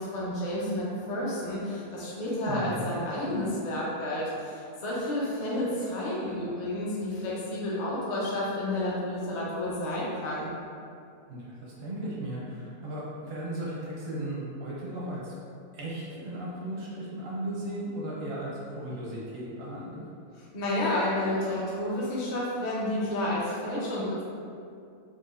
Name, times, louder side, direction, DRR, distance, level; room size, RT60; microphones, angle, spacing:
voice 1, 0.0-10.5 20.4-24.2, left 1 dB, 55° left, -6 dB, 0.4 m, -30 dB
voice 2, 2.4-2.9 11.3-15.3 15.7-20.0, right 1 dB, 60° right, -6 dB, 0.6 m, -36 dB
4.6 x 2.3 x 2.4 m, 2.4 s
omnidirectional pair, 1.7 m